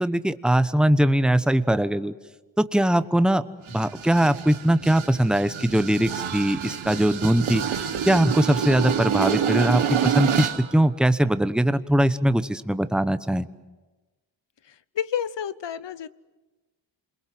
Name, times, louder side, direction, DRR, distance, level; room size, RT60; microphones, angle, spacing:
voice 1, 0.0-2.1 2.6-3.4 3.7-13.5, right 1 dB, ahead, 12 dB, 1.0 m, -21 dB
sound 1, 3.7-10.7, right 8 dB, 90° right, 1.5 m, -27 dB
voice 2, 14.6-16.1, left 9 dB, 65° left, 17 dB, 0.9 m, -30 dB
28.0 x 22.0 x 7.8 m, 1.2 s
cardioid pair, 60°, 46 cm